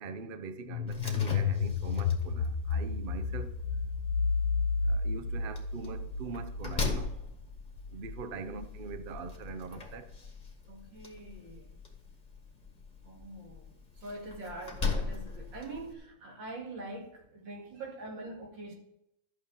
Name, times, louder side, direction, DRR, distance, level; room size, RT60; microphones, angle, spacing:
voice 1, 0.0-3.5 4.9-7.1 7.9-10.1, right 4 dB, 60° right, 0.6 m, -42 dB
sound 1, 0.7-9.4, left 5 dB, 70° left, 1.4 m, -32 dB
Slam, 0.9-15.9, left 4 dB, 25° left, 1.7 m, -41 dB
voice 2, 10.7-11.7 13.0-13.7 14.0-18.7, right 2 dB, 75° right, 3.0 m, -44 dB
12.0 x 6.3 x 7.2 m
omnidirectional pair, 2.0 m